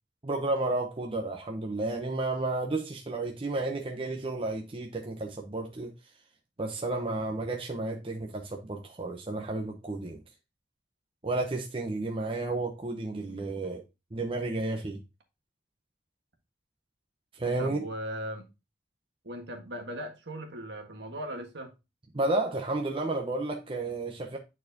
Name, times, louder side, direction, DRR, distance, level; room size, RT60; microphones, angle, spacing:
voice 1, 0.2-5.9 6.6-10.2 11.2-13.8 14.1-15.0 17.3-17.9 22.1-24.4, right 2 dB, 30° right, 0.7 m, -32 dB
voice 2, 17.6-18.4 19.2-21.7, equal, 65° right, 1.6 m, -38 dB
9.2 x 4.2 x 2.7 m
head